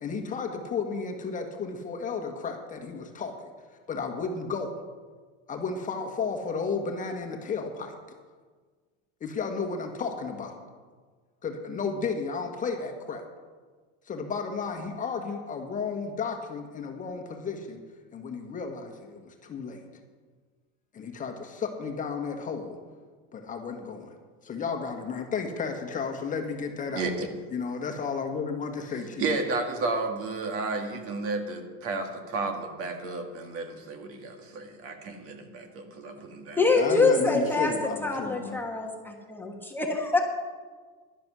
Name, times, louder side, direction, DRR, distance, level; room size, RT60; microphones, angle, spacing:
voice 1, 0.0-3.3 3.9-4.7 5.5-7.9 9.2-10.5 11.4-13.2 14.1-17.8 18.1-19.8 20.9-22.8 23.3-24.1 24.4-27.1 27.5-29.3 36.7-38.6, left 5 dB, 25° left, 4 dB, 1.4 m, -33 dB
voice 2, 26.9-27.3 29.2-36.6, right 3 dB, 45° right, 5 dB, 1.8 m, -32 dB
voice 3, 36.6-37.7 38.0-40.2, left 3 dB, 5° left, 1 dB, 1.3 m, -25 dB
11.5 x 10.0 x 6.2 m, 1.5 s
supercardioid pair, 135°, 32 cm